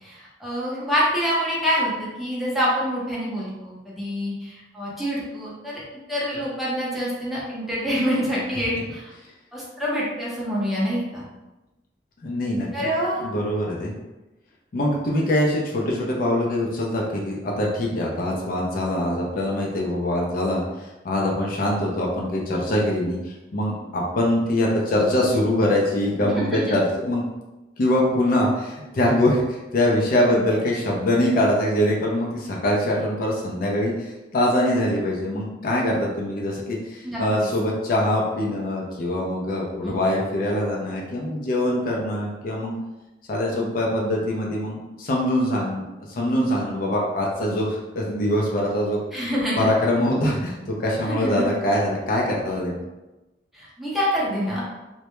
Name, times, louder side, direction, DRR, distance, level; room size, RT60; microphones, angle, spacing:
voice 1, 0.0-5.8 6.1-9.1 9.5-11.2 12.7-13.2 26.2-26.6 37.0-37.5 39.8-40.0 49.1-49.7 51.1-51.4 53.5-54.6, equal, ahead, -7 dB, 0.6 m, -26 dB
voice 2, 12.2-12.9 13.2-13.9 14.7-27.2 27.8-42.7 43.3-45.8 46.1-49.0 49.6-52.8, left 1 dB, 55° left, -2 dB, 0.4 m, -23 dB
2.1 x 2.0 x 2.9 m, 1.1 s
head